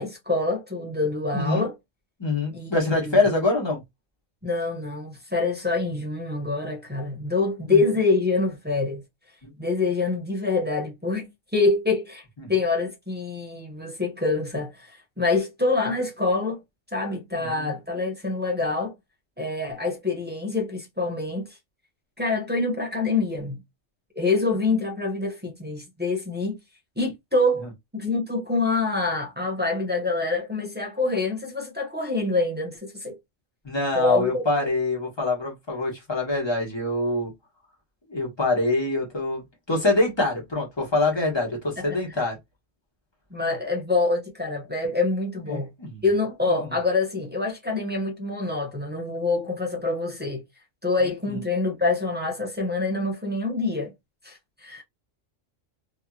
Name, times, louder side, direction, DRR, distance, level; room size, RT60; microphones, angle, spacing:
voice 1, 0.0-1.7 2.5-3.2 4.4-9.0 9.6-12.2 12.5-16.6 16.9-18.9 19.4-21.6 22.2-23.6 24.2-26.6 27.0-27.7 27.9-33.2 33.9-34.4 43.3-45.7 46.0-50.4 50.8-53.9 54.2-54.8, left 3 dB, 15° right, 0.4 m, -26 dB
voice 2, 1.3-1.7 2.2-3.8 7.7-7.8 9.4-9.5 12.4-12.5 17.4-17.7 33.6-37.3 38.1-42.4 45.5-46.0 46.5-46.7 51.3-51.4, left 2 dB, 20° left, 1.2 m, -25 dB
2.8 x 2.7 x 2.3 m
omnidirectional pair, 1.3 m